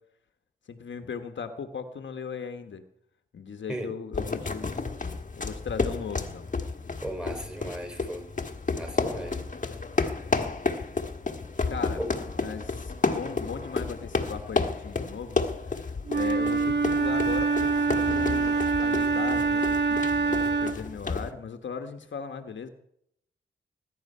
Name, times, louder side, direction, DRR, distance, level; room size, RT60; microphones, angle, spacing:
voice 1, 0.7-2.8 3.3-4.7 5.3-6.5 11.7-12.0 12.4-15.4 15.6-22.7, left 6 dB, 65° left, 7 dB, 1.3 m, -38 dB
sound 1, 4.1-21.3, left 4 dB, 40° left, 1.5 m, -31 dB
voice 2, 7.0-8.2 8.7-9.4 12.0-12.1, equal, 5° right, 5 dB, 4.4 m, -35 dB
Wind instrument woodwind instrument, 16.1-20.9, right 4 dB, 60° right, 1.7 m, -25 dB
20.0 x 10.5 x 5.6 m, 0.73 s
cardioid pair, 90°, 21 cm